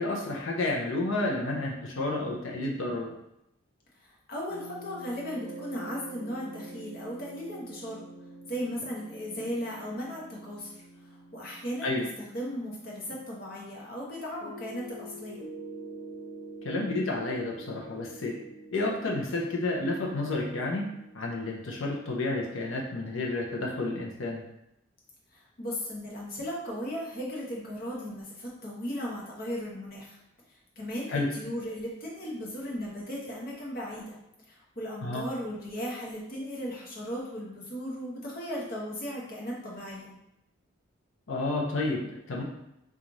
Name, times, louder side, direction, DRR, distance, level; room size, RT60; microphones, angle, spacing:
voice 1, 0.0-3.1 11.8-12.0 16.6-18.3 18.7-20.8 21.1-24.4 31.1-31.3 35.0-35.2 41.3-42.4, left 2 dB, 65° left, -1 dB, 0.6 m, -30 dB
voice 2, 4.0-8.1 8.4-12.1 12.3-15.4 25.3-30.2 30.5-34.2 34.4-40.2, equal, 45° left, -4 dB, 0.9 m, -37 dB
sound 1, 4.5-13.2 14.4-22.1, right 1 dB, 15° left, 0.7 m, -46 dB
3.1 x 2.4 x 3.9 m, 0.84 s
head